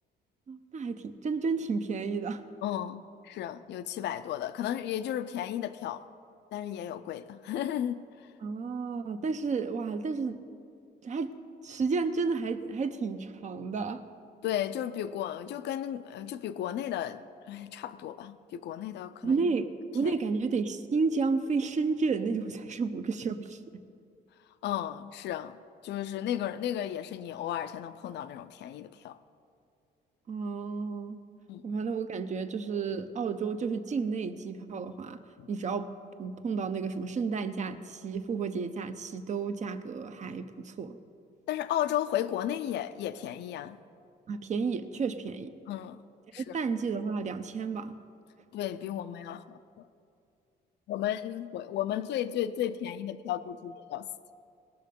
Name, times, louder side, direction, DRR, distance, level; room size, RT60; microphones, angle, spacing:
voice 1, 0.5-2.4 8.4-10.4 11.0-11.3 11.6-14.0 19.2-23.8 30.3-31.2 31.6-35.2 35.5-35.9 36.2-41.0 44.3-45.5 46.4-47.9, right 4 dB, 40° right, 10 dB, 0.7 m, -31 dB
voice 2, 2.6-6.0 6.5-8.3 14.4-17.2 17.5-19.4 20.0-20.1 24.6-25.6 25.8-29.2 31.5-31.6 35.4-35.5 41.5-43.8 45.7-46.0 46.3-46.6 48.5-49.9 50.9-54.1, left 11 dB, 70° left, 12 dB, 0.5 m, -34 dB
19.0 x 6.6 x 5.3 m, 2.4 s
cardioid pair, 120°, 18 cm